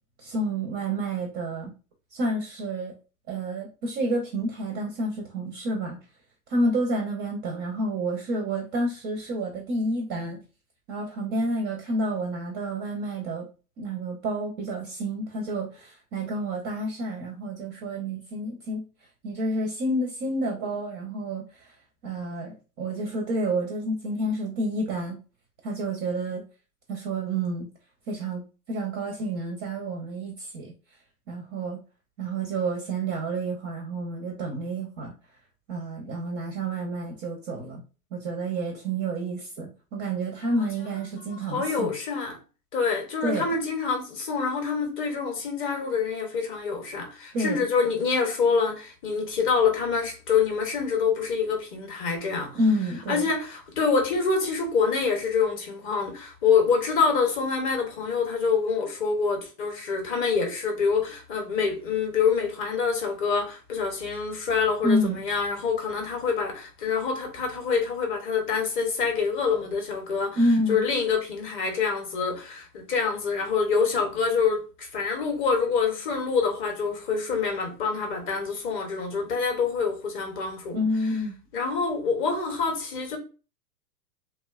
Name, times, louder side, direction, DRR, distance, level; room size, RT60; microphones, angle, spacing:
voice 1, 0.2-1.7 2.1-2.9 3.3-6.0 6.5-10.4 10.9-13.5 13.8-18.8 19.2-21.7 22.0-25.2 25.6-26.4 26.9-27.7 28.1-28.4 28.7-30.7 31.3-31.8 32.2-35.1 35.7-37.8 38.1-41.9 43.2-43.5 47.3-47.7 52.5-53.3 64.8-65.2 70.3-70.8 80.7-81.3, right 1 dB, 25° right, 0.4 m, -29 dB
voice 2, 41.5-42.4 42.7-52.6 53.1-70.4 70.7-80.8 81.5-83.2, left 5 dB, 25° left, 0.7 m, -26 dB
2.7 x 2.1 x 2.3 m
hypercardioid pair, 110°, 47 cm